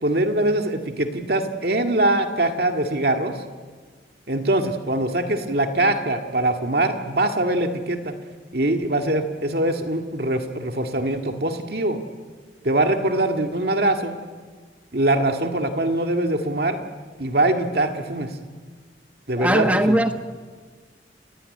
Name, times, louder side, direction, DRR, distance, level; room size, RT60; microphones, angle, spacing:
voice 1, 0.0-3.4 4.3-8.1 8.5-12.0 12.6-14.2 14.9-16.8 17.2-18.3 19.3-20.0, right 1 dB, 55° right, 2.1 m, -22 dB
voice 2, 19.4-20.1, right 1 dB, 10° right, 1.5 m, -19 dB
29.5 x 17.0 x 9.9 m
head